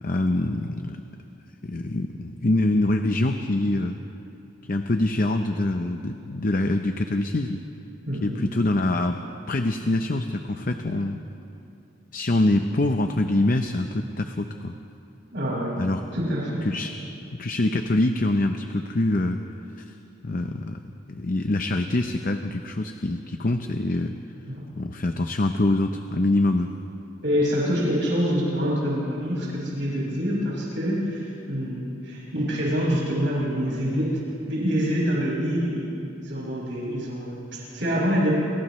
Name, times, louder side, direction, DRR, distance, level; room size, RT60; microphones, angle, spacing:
voice 1, 0.0-1.0 1.6-4.0 4.7-7.6 8.2-9.2 9.5-11.2 12.1-14.7 15.8-16.0 16.6-17.0 17.4-19.4 19.8-19.9 20.2-20.8 21.1-24.1 24.8-26.7, left 2 dB, 45° left, 6 dB, 0.7 m, -24 dB
voice 2, 8.1-8.4 15.3-15.8 16.1-16.7 24.4-24.6 27.2-34.2 34.5-38.4, equal, 70° right, -6 dB, 6.2 m, -26 dB
30.0 x 27.0 x 3.2 m, 2.8 s
head